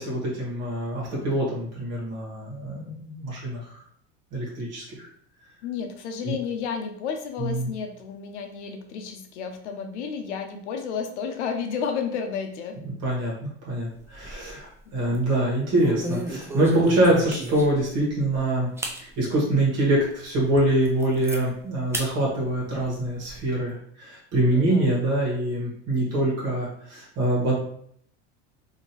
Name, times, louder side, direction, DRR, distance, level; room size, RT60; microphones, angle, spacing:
voice 1, 0.0-3.6 4.3-5.1 6.2-6.4 7.4-7.7 12.9-18.7 19.0-27.5, right 1 dB, 45° right, -4 dB, 1.4 m, -25 dB
voice 2, 5.6-12.8 14.9-15.2 24.4-25.0, left 6 dB, 90° left, 5 dB, 0.7 m, -32 dB
sound 1, 13.9-14.6 15.0-15.2 15.8-17.8 18.3-18.4 18.8-19.0 19.5-19.6 20.1-20.2 20.6-21.4 21.9-22.1 22.5-23.4, right 2 dB, 10° right, 0.4 m, -34 dB
2.8 x 2.7 x 2.9 m, 0.65 s
supercardioid pair, 105°, 34 cm